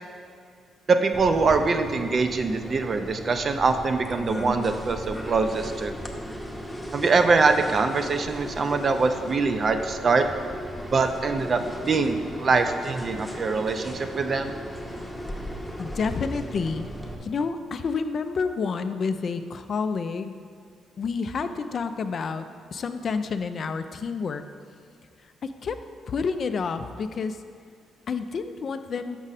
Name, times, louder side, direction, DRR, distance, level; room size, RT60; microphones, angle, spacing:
voice 1, 0.9-5.9 6.9-10.2 10.9-14.5, right 4 dB, 45° right, 7 dB, 0.5 m, -23 dB
sound 1, 1.1-17.1, equal, ahead, 0.8 m, -36 dB
voice 2, 15.8-16.9 17.2-20.3 21.0-24.4 25.4-25.8 26.1-27.4 28.1-29.2, left 5 dB, 50° left, 9 dB, 0.3 m, -29 dB
6.1 x 5.3 x 4.0 m, 2.3 s
cardioid pair, 90°, 0 cm